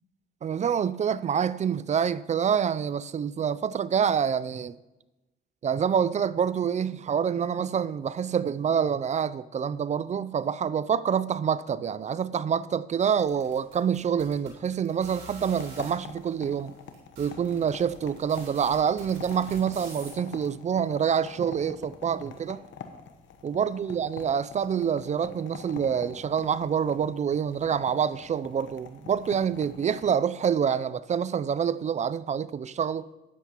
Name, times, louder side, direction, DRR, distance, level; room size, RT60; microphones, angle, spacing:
voice 1, 0.4-4.8 5.6-16.7 17.2-22.6 23.4-33.1, right 7 dB, 35° right, 0.4 m, -27 dB
sound 1, 13.1-15.9 16.6-16.7 16.9-20.5, right 3 dB, 85° right, 3.9 m, -46 dB
sound 2, 15.6-30.1, left 7 dB, 70° left, 1.1 m, -45 dB
13.0 x 9.7 x 2.9 m
cardioid pair, 90°, 20 cm